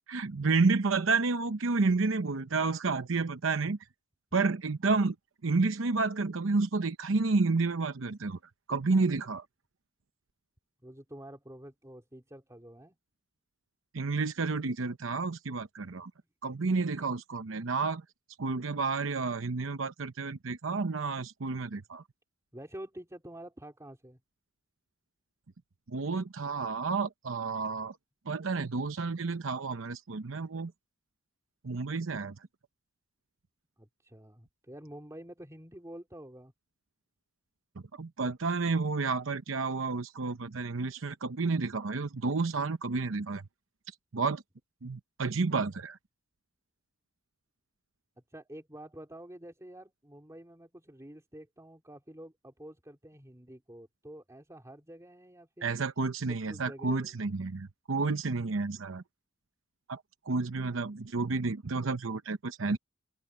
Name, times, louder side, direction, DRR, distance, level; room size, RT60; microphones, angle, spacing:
voice 1, 0.1-3.8 4.3-5.2 5.4-8.4 8.7-9.4 13.9-16.1 16.4-18.0 18.4-22.0 25.9-28.0 28.3-30.7 31.6-32.3 38.0-43.4 44.1-44.4 44.8-46.0 55.6-59.0 59.9-60.0 60.3-62.8, right 4 dB, 85° right, 0.8 m, -30 dB
voice 2, 10.8-12.9 22.5-24.2 33.8-36.5 48.3-55.8 56.3-57.1, right 1 dB, 15° right, 3.1 m, -48 dB
open air
head